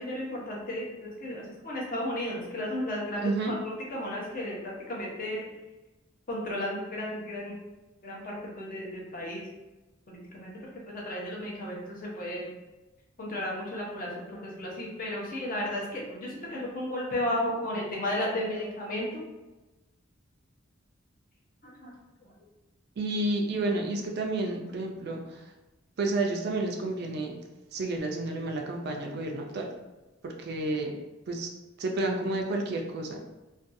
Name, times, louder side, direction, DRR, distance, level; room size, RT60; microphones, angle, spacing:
voice 1, 0.0-3.3 3.6-5.5 6.3-7.6 8.0-9.5 10.1-12.5 13.2-19.2 21.6-21.9, left 1 dB, 45° left, -3 dB, 0.7 m, -34 dB
voice 2, 3.2-3.5 23.0-25.5 26.0-27.4 27.7-29.7 30.2-30.9 31.3-31.5 31.8-33.2, right 2 dB, 55° right, 2 dB, 0.4 m, -30 dB
2.5 x 2.3 x 2.5 m, 1.1 s
head